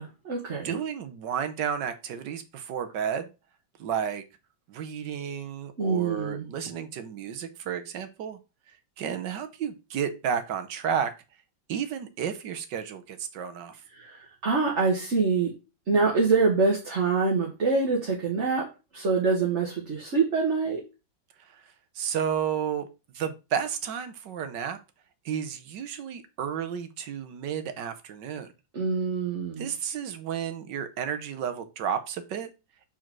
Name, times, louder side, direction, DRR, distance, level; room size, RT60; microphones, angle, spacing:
voice 1, 0.0-0.8 5.8-6.5 13.9-15.5 15.9-20.8 28.7-29.7, right 4 dB, 40° right, -2 dB, 1.6 m, -25 dB
voice 2, 0.6-3.3 3.8-4.2 4.7-8.4 9.0-11.1 11.7-13.8 21.4-22.9 23.1-24.8 25.2-28.5 29.6-32.5, right 8 dB, 70° right, 9 dB, 1.5 m, -32 dB
4.9 x 4.5 x 5.9 m, 0.28 s
omnidirectional pair, 2.0 m